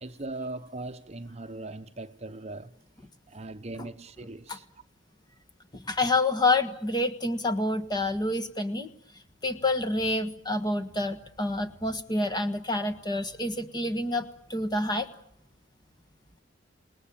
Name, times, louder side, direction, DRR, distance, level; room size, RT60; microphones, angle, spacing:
voice 1, 0.0-2.7 3.3-4.7, right 2 dB, 35° right, 0.9 m, -39 dB
voice 2, 5.7-8.9 9.4-15.1, left 2 dB, 20° left, 1.5 m, -28 dB
28.0 x 19.5 x 8.7 m
head